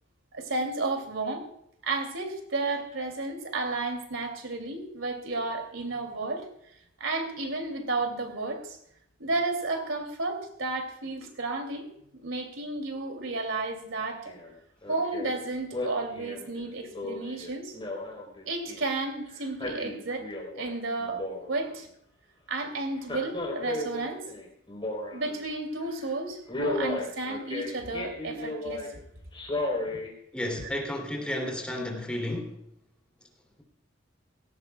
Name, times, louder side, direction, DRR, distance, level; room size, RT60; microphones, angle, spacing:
voice 1, 0.3-1.5 1.8-6.5 7.0-8.8 9.2-11.9 12.2-14.3 14.9-17.8 18.5-20.3 20.6-21.2 21.5-21.9 22.5-24.2 25.1-28.9 30.6-30.7, right 3 dB, 80° right, 5 dB, 2.7 m, -32 dB
Male speech man speaking, 14.3-14.5 14.8-15.3 15.7-18.9 19.4-20.7 21.0-21.8 23.0-25.4 25.8-26.0 26.5-28.9 29.3-30.1 30.6-30.7, left 2 dB, 25° left, 3.7 m, -34 dB
voice 2, 30.3-32.5, left 1 dB, 5° left, 1 dB, 2.7 m, -32 dB
17.5 x 16.5 x 2.3 m, 0.74 s
head